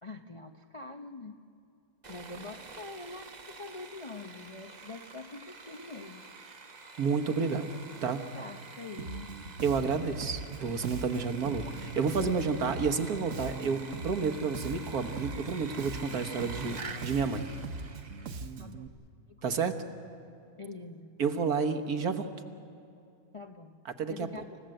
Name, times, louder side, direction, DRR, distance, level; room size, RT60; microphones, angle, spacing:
voice 1, 0.0-1.4 2.1-6.3 7.9-9.3 18.6-18.9 19.3-19.5 20.6-21.2 23.3-23.8 24.1-24.6, left 3 dB, 35° left, 4 dB, 0.5 m, -45 dB
Sawing, 2.0-18.5, right 4 dB, 30° right, 1.0 m, -47 dB
voice 2, 7.0-8.2 9.6-17.5 19.4-19.7 21.2-22.3 24.0-24.3, right 5 dB, 75° right, 7 dB, 1.7 m, -30 dB
Bass guitar, 9.0-18.9, right 4 dB, 60° right, 1.2 m, -41 dB
29.0 x 16.0 x 7.8 m, 2.5 s
omnidirectional pair, 1.6 m